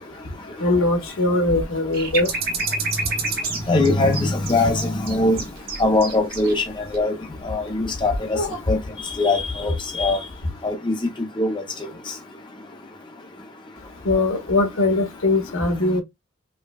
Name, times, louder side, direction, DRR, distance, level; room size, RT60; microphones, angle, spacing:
voice 1, 0.6-2.3 8.3-8.6 14.1-16.0, left 2 dB, 85° left, 1.1 m, -21 dB
sound 1, 1.9-6.5 6.9-7.0, right 4 dB, 50° right, 1.2 m, -28 dB
voice 2, 3.7-5.4 5.8-6.6 6.9-7.1 7.4-8.4 8.7-8.8 9.2-10.2 10.6-10.9 11.4-11.5, left 2 dB, 25° left, 0.7 m, -21 dB
5.2 x 2.2 x 2.3 m
head